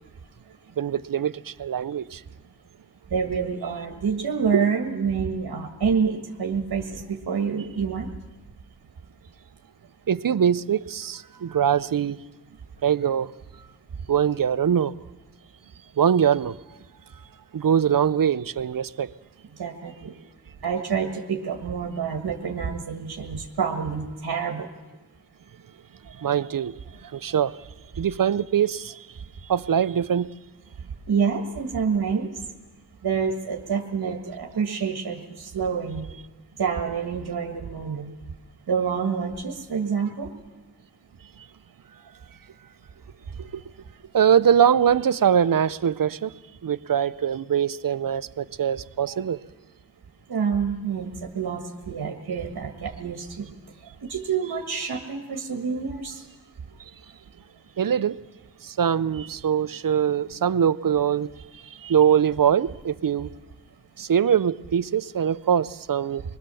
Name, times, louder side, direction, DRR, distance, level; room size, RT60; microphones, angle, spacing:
voice 1, 0.8-2.2 4.5-4.7 10.1-12.2 12.8-13.3 14.1-14.9 16.0-16.6 17.5-19.1 26.0-27.7 28.0-29.1 29.4-30.3 41.4-41.5 43.4-43.6 44.1-46.3 46.6-49.4 57.8-58.2 58.6-63.3 64.0-66.2, right 8 dB, 60° right, 17 dB, 0.7 m, -23 dB
voice 2, 3.1-8.1 19.6-20.2 20.6-24.7 31.1-32.3 33.0-36.1 36.6-38.1 38.7-40.3 50.3-53.5 53.8-56.3, right 6 dB, 85° right, 2 dB, 1.7 m, -27 dB
25.5 x 20.0 x 7.0 m, 1.2 s
cardioid pair, 40°, 37 cm